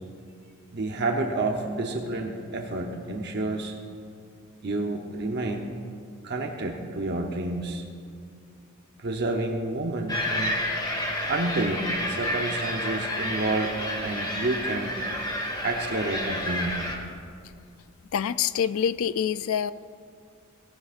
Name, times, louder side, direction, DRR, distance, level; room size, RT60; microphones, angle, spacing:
voice 1, 0.7-3.7 4.6-5.7 6.2-7.8 9.0-10.6 11.3-14.9 15.6-16.8, right 2 dB, 50° right, 2 dB, 0.9 m, -29 dB
sound 1, 10.1-17.0, left 1 dB, 20° left, 1.5 m, -30 dB
voice 2, 18.1-19.7, left 8 dB, 70° left, 15 dB, 0.4 m, -26 dB
17.5 x 16.0 x 2.5 m, 2.2 s
head